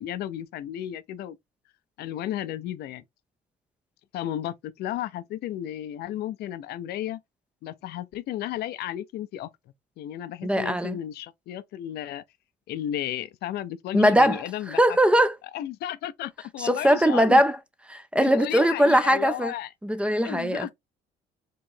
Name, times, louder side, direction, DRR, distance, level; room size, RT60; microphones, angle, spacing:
voice 1, 0.0-1.4 2.0-3.0 4.1-7.2 7.6-9.5 10.0-12.2 12.7-15.0 15.5-17.4 18.1-19.7 20.2-20.7, left 12 dB, 70° left, 0.5 m, -33 dB
voice 2, 10.4-11.0 13.9-15.3 16.6-17.6 17.9-19.5 19.8-20.7, equal, 5° right, 0.5 m, -21 dB
4.6 x 3.1 x 2.7 m
cardioid pair, 110°, 17 cm